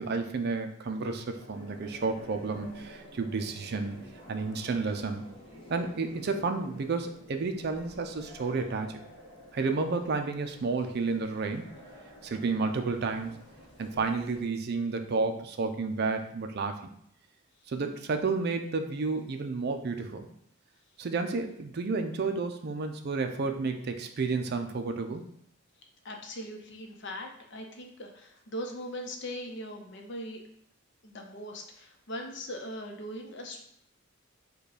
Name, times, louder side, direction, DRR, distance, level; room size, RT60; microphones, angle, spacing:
voice 1, 0.0-4.0 4.3-5.3 5.7-9.0 9.5-11.7 12.2-13.3 13.8-16.8 17.7-20.2 21.0-25.2, right 4 dB, 50° right, 6 dB, 0.4 m, -31 dB
sound 1, 1.3-14.4, equal, 25° left, 1.0 m, -50 dB
voice 2, 26.0-30.4 31.0-33.6, equal, 60° left, 3 dB, 0.7 m, -40 dB
4.8 x 2.3 x 4.8 m, 0.70 s
head